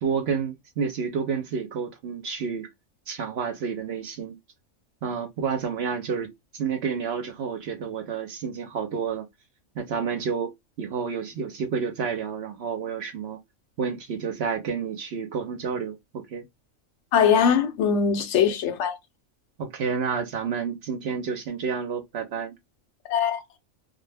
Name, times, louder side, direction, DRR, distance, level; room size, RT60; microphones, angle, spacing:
voice 1, 0.0-2.7 3.1-4.4 5.0-9.3 9.7-10.5 10.8-13.4 13.8-16.4 19.6-22.6, right 6 dB, 65° right, 0.7 m, -30 dB
voice 2, 17.1-18.9 23.1-23.4, left 7 dB, 70° left, 0.8 m, -21 dB
2.1 x 2.1 x 3.2 m
omnidirectional pair, 1.4 m